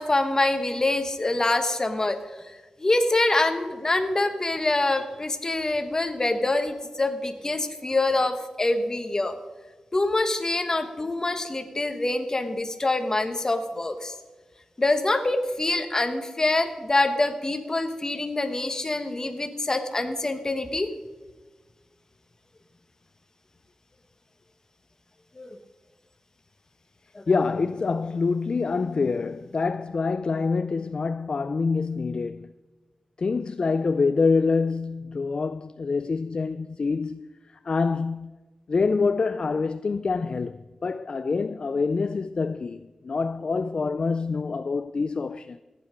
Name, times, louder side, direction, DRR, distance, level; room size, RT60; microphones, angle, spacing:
voice 1, 0.0-2.2 2.4-9.3 9.9-14.1 14.8-20.9 25.4-25.6 27.1-27.2, left 2 dB, 30° left, 1.3 m, -25 dB
voice 2, 27.3-32.5 33.2-38.4 38.7-45.6, left 4 dB, 50° left, 0.3 m, -26 dB
14.5 x 9.7 x 5.1 m
wide cardioid pair, 85°, 2 cm